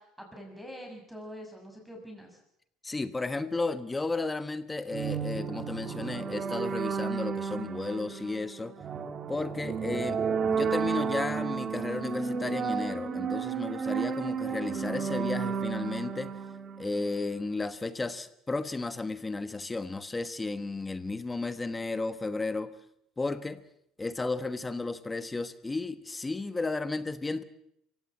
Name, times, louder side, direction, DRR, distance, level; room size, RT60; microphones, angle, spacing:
voice 1, 0.0-2.4, equal, 5° right, 2 dB, 6.7 m, -45 dB
voice 2, 2.8-8.7 9.3-16.4 16.8-22.7 23.2-23.6 24.0-27.4, left 3 dB, 20° left, 12 dB, 1.3 m, -33 dB
sound 1, 4.9-17.4, right 6 dB, 40° right, 1.9 m, -32 dB
24.0 x 16.5 x 7.4 m, 0.77 s
hypercardioid pair, 75°, 0 cm